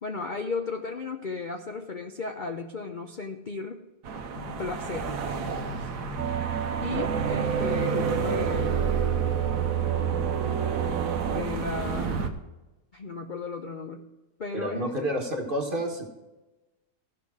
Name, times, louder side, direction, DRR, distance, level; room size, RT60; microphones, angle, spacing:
voice 1, 0.0-3.9 4.6-5.1 5.8-5.9 6.8-8.8 11.2-12.4 12.9-14.1 14.4-14.9, left 4 dB, 45° left, 3 dB, 0.7 m, -35 dB
sound 1, 4.0-12.3, right 5 dB, 80° right, 1.5 m, -33 dB
sound 2, 4.3-12.3, left 5 dB, 75° left, 1.8 m, -43 dB
sound 3, 6.2-11.4, right 9 dB, 65° right, 1.1 m, -28 dB
voice 2, 14.5-16.0, equal, 35° right, 1 dB, 1.6 m, -29 dB
15.5 x 5.6 x 4.8 m, 1.1 s
omnidirectional pair, 1.7 m